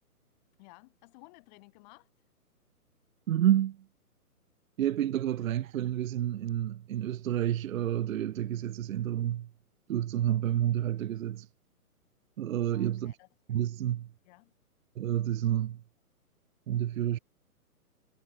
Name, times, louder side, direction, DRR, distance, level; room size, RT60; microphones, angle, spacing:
voice 1, 0.6-2.1 5.4-5.5 12.7-13.3 14.2-14.5, left 26 dB, 30° left, 3.4 m, -56 dB
voice 2, 3.3-3.8 4.8-9.5 9.9-11.5 12.4-13.2 13.5-14.1 15.0-15.8 16.7-17.2, right 11 dB, 60° right, 0.5 m, -29 dB
hypercardioid pair, 145°, 46 cm